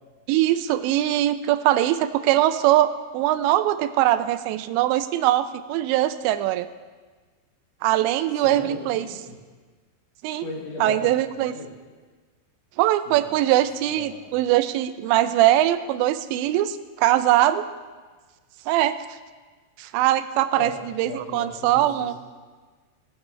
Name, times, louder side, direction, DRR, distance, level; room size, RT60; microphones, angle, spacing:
voice 1, 0.3-6.7 7.8-9.1 10.2-10.4 10.8-11.5 12.8-17.6 18.7-19.0 19.8-22.1, right 13 dB, 90° right, 12 dB, 2.9 m, -21 dB
voice 2, 8.4-9.4 10.4-11.7 13.1-14.4 20.5-20.7 21.0-22.1, left 3 dB, 65° left, -1 dB, 3.5 m, -37 dB
19.5 x 9.3 x 3.3 m, 1.4 s
omnidirectional pair, 5.0 m